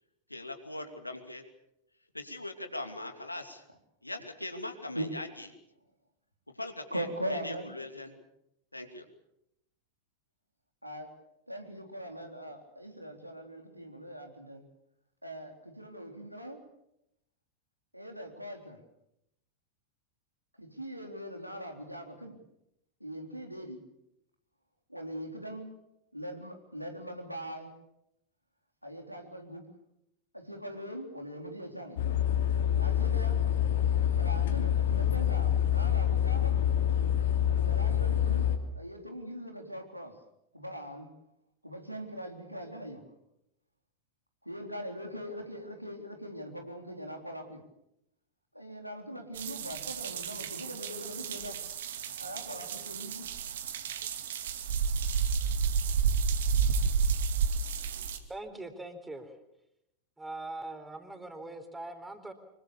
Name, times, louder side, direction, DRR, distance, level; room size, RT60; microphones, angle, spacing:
voice 1, 0.3-1.4 2.1-3.6 4.0-5.5 6.5-8.2 8.7-9.0, left 2 dB, 85° left, 6 dB, 2.7 m, -41 dB
voice 2, 6.9-7.7 10.8-11.1 11.5-14.6 15.2-16.6 17.9-18.8 20.6-22.3 23.0-23.8 24.9-25.7 26.1-27.7 28.8-29.7 30.3-32.0 32.7-33.4 34.1-36.6 37.5-38.5 38.7-40.1 40.5-41.1 41.6-43.0 44.4-47.6 48.5-51.6 52.2-53.3, equal, 90° right, 3 dB, 3.7 m, -41 dB
sound 1, 32.0-38.6, left 10 dB, 60° left, 2.7 m, -26 dB
sound 2, 49.3-58.2, right 6 dB, 60° right, 2.4 m, -31 dB
voice 3, 58.3-59.3 60.2-62.3, right 2 dB, 10° right, 7 dB, 4.0 m, -42 dB
25.5 x 23.0 x 7.0 m, 0.83 s
figure-of-eight pair, 90°, 0 cm